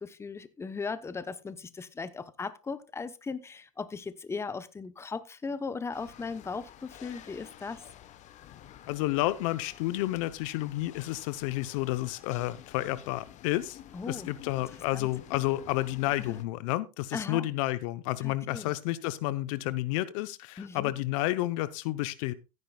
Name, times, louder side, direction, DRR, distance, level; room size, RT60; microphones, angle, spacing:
voice 1, 0.0-7.8 13.9-14.3 14.9-15.1 16.3-16.4 17.1-17.5 18.2-18.7 20.6-20.9, left 4 dB, 15° left, 13 dB, 0.9 m, -38 dB
sound 1, 5.9-16.4, left 11 dB, 45° left, 1.1 m, -50 dB
voice 2, 8.9-13.8 14.1-22.3, left 17 dB, 70° left, 15 dB, 0.8 m, -31 dB
15.0 x 9.8 x 2.3 m, 0.27 s
supercardioid pair, 105°, 17 cm